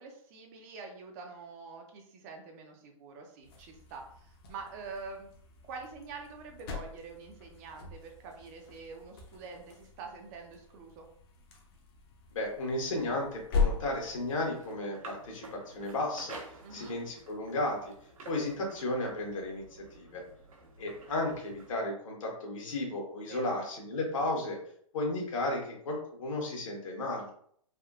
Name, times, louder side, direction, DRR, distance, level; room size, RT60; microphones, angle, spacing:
voice 1, 0.0-5.3 5.7-11.1 16.6-17.0 23.3-23.6, right 4 dB, 30° right, 3 dB, 0.5 m, -46 dB
sound 1, 3.4-14.5, left 5 dB, 40° left, 0.7 m, -39 dB
voice 2, 12.3-16.4 16.7-17.9 18.3-19.6 19.9-20.2 20.8-24.6 24.9-27.3, left 2 dB, 65° left, 0 dB, 1.2 m, -34 dB
sound 2, 14.1-21.7, right 3 dB, 75° right, 1.0 m, -51 dB
3.5 x 2.2 x 2.4 m, 0.63 s
hypercardioid pair, 135°, 18 cm